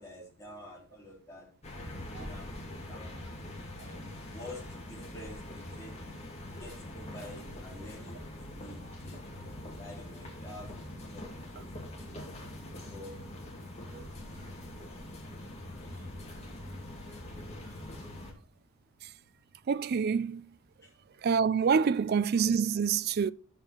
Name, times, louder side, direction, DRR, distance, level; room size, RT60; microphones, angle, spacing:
voice 1, 0.0-1.5 2.1-3.1 3.4-6.0 6.6-8.2 8.5-9.2 9.8-11.3 11.5-11.7 12.1-12.2 12.9-13.2 14.2-14.8 20.8-20.9, left 1 dB, 15° left, 3.9 m, -49 dB
sound 1, 1.6-18.3, left 1 dB, 30° left, 2.4 m, -43 dB
voice 2, 19.7-20.5 21.2-23.3, right 6 dB, 50° right, 0.4 m, -27 dB
11.5 x 6.9 x 4.5 m
head